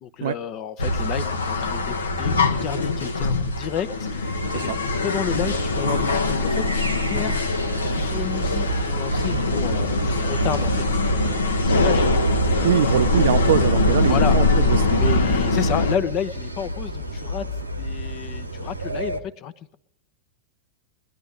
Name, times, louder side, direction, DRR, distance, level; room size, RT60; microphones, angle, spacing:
voice 1, 0.0-4.7 5.0-12.1 12.5-13.1 14.0-14.3 14.9-17.4 17.8-19.8, left 9 dB, 40° left, 0.8 m, -31 dB
sound 1, 0.8-16.0, left 2 dB, 70° left, 1.0 m, -22 dB
sound 2, 5.3-19.2, right 1 dB, 85° right, 1.0 m, -32 dB
voice 2, 12.6-15.1, right 10 dB, 60° right, 0.5 m, -23 dB
22.0 x 10.5 x 3.7 m
figure-of-eight pair, 90°, 0 cm